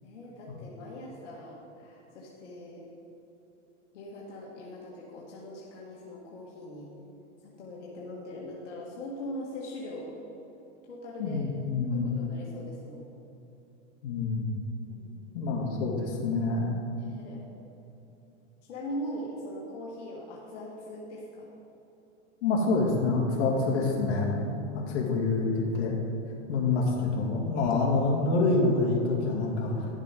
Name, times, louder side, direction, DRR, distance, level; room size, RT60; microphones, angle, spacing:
voice 1, 0.0-2.9 3.9-6.9 7.4-10.2 10.9-11.5 11.9-13.1 14.9-15.4 17.0-17.4 18.7-21.5 24.7-25.2, left 1 dB, 85° left, -4 dB, 2.0 m, -41 dB
voice 2, 11.2-12.1 14.0-14.6 15.3-16.7 22.4-25.9 26.5-29.9, left 3 dB, 65° left, -2 dB, 2.5 m, -27 dB
11.5 x 7.4 x 5.2 m, 2.9 s
supercardioid pair, 135°, 36 cm